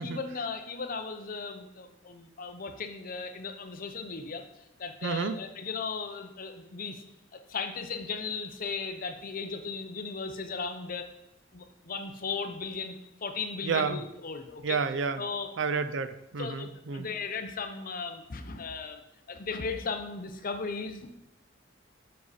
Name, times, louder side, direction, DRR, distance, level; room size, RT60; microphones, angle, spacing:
voice 1, 0.0-4.4 4.8-7.0 7.3-11.1 11.5-14.8 15.2-15.5 16.4-19.0 19.3-21.2, left 4 dB, 45° left, 6 dB, 0.7 m, -36 dB
voice 2, 5.0-5.4 13.6-14.0 14.6-15.2 15.6-17.1, right 5 dB, 65° right, 11 dB, 0.4 m, -30 dB
7.5 x 5.5 x 4.1 m, 0.84 s
head